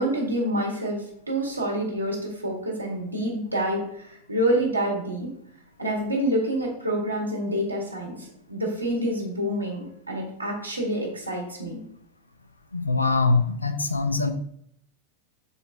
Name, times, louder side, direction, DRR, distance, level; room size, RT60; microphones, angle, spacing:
voice 1, 0.0-5.3 5.8-11.8, right 1 dB, 85° right, -1 dB, 1.7 m, -27 dB
voice 2, 12.7-14.3, left 3 dB, 80° left, 8 dB, 0.6 m, -23 dB
6.9 x 4.2 x 3.5 m, 0.69 s
figure-of-eight pair, 90°, 0 cm